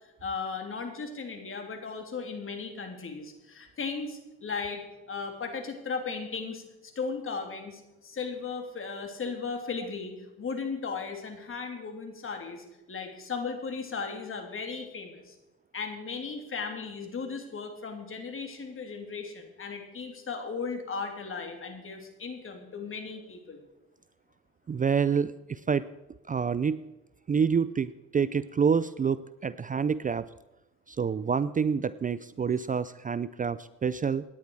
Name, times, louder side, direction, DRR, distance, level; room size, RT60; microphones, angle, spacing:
voice 1, 0.0-6.6 6.9-10.1 10.4-15.4 15.7-23.6, left 5 dB, 45° left, 4 dB, 3.0 m, -36 dB
voice 2, 24.7-25.9 26.3-26.8 27.3-30.3 30.9-34.2, right 6 dB, 25° right, 16 dB, 0.4 m, -27 dB
17.5 x 10.5 x 4.7 m, 0.98 s
cardioid pair, 90°, 30 cm